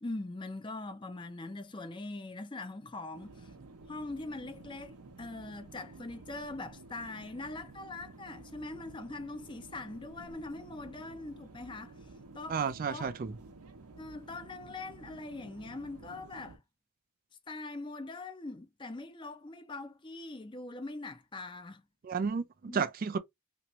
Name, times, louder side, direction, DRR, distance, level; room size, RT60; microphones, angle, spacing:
voice 1, 0.0-3.5 3.9-11.9 12.3-12.6 12.9-13.1 14.0-16.6 17.5-21.8 22.7-22.8, left 2 dB, 20° left, 0.5 m, -42 dB
sound 1, 3.1-16.6, right 3 dB, 90° right, 0.7 m, -52 dB
voice 2, 12.5-13.4 22.0-23.2, right 5 dB, 40° right, 0.4 m, -32 dB
2.9 x 2.5 x 2.9 m
head